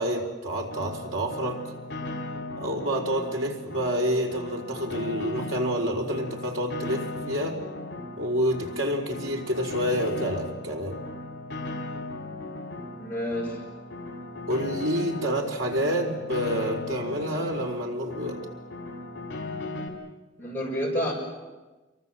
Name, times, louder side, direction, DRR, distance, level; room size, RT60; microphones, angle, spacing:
voice 1, 0.0-1.6 2.5-7.6 8.2-11.0 14.5-18.4, equal, 85° right, 2 dB, 4.3 m, -28 dB
Piano, 0.7-19.9, left 2 dB, 65° left, 4.5 m, -37 dB
voice 2, 12.9-13.6 20.4-21.1, equal, 10° left, -3 dB, 6.8 m, -30 dB
28.5 x 23.5 x 7.7 m, 1.2 s
head